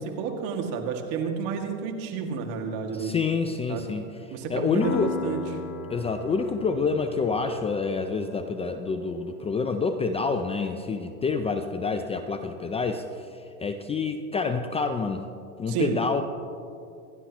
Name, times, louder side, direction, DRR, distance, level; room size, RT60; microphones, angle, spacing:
voice 1, 0.0-3.1 3.7-3.9 4.3-5.4 15.7-16.0, right 6 dB, 55° right, 3 dB, 2.2 m, -30 dB
voice 2, 2.9-4.1 4.5-5.1 5.9-15.2 15.6-16.2, left 4 dB, 15° left, 7 dB, 0.4 m, -27 dB
Piano, 4.8-12.2, left 6 dB, 70° left, 1.9 m, -40 dB
28.0 x 11.5 x 3.0 m, 2.5 s
supercardioid pair, 125°, 42 cm